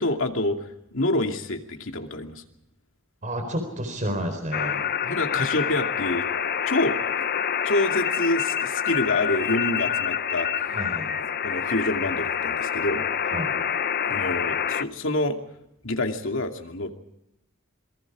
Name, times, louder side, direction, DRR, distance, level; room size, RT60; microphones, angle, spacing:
voice 1, 0.0-2.4 5.0-6.3 6.7-7.0 7.6-10.5 11.4-13.0 14.0-15.4 15.8-16.9, left 2 dB, 65° left, 4 dB, 2.6 m, -27 dB
voice 2, 3.2-4.8 10.7-11.2 13.3-13.5, equal, 40° right, 6 dB, 4.3 m, -30 dB
sound 1, 4.5-14.8, left 8 dB, 45° left, 0.8 m, -27 dB
27.0 x 23.5 x 4.9 m, 0.81 s
head